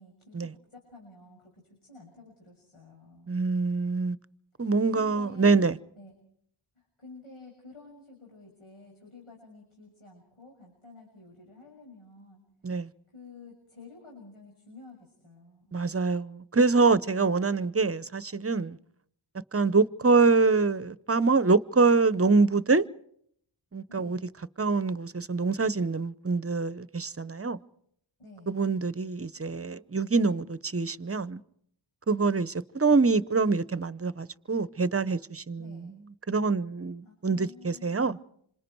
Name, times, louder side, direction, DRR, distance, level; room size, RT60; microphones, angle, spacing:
voice 1, 0.0-3.3 4.6-5.7 6.0-6.1 6.7-12.5 13.1-15.8 23.9-24.2 28.2-28.6 35.6-35.9 37.0-38.2, left 3 dB, 90° left, 6.8 m, -51 dB
voice 2, 3.3-4.2 4.6-5.8 12.6-12.9 15.7-18.8 19.5-22.8 23.7-24.2 24.6-27.6 28.5-31.4 32.1-35.8 36.3-38.2, right 4 dB, 30° right, 0.8 m, -25 dB
27.0 x 26.0 x 4.6 m
cardioid pair, 55°, 49 cm